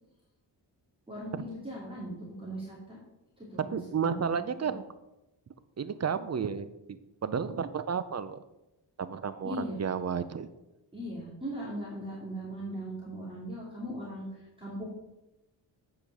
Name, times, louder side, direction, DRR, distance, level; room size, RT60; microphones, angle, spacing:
voice 1, 1.1-3.0 3.4-4.4 4.6-4.7 9.4-9.8 10.9-14.9, equal, 10° right, -6 dB, 2.6 m, -39 dB
voice 2, 3.7-4.8 5.8-6.7 7.2-8.4 9.0-10.5, right 6 dB, 35° right, 13 dB, 0.6 m, -32 dB
8.6 x 5.2 x 6.1 m, 0.95 s
wide cardioid pair, 115°, 45 cm